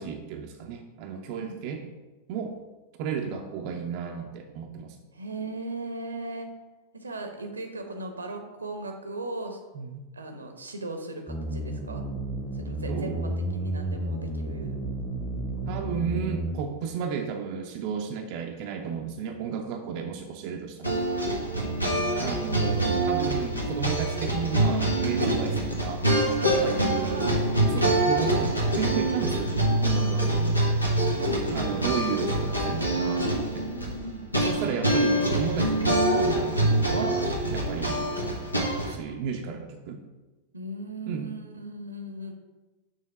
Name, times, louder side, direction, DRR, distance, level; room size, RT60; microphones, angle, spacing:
voice 1, 0.0-1.8 2.3-2.6 3.0-5.0 9.7-10.1 12.9-13.3 15.7-21.0 22.2-26.0 26.6-30.6 31.5-33.7 34.4-38.2 38.9-40.0 41.1-41.3, right 7 dB, 45° right, 3 dB, 0.5 m, -33 dB
voice 2, 5.1-6.5 6.9-9.6 10.1-12.0 12.5-14.8 26.5-27.4 31.1-31.4 33.4-34.2 40.5-42.3, right 2 dB, 75° right, 5 dB, 0.9 m, -38 dB
sound 1, 11.3-16.5, right 1 dB, ahead, 0.9 m, -32 dB
sound 2, 20.8-38.9, right 1 dB, 85° left, 1.1 m, -25 dB
6.4 x 3.3 x 5.6 m, 1.2 s
figure-of-eight pair, 90°, 0 cm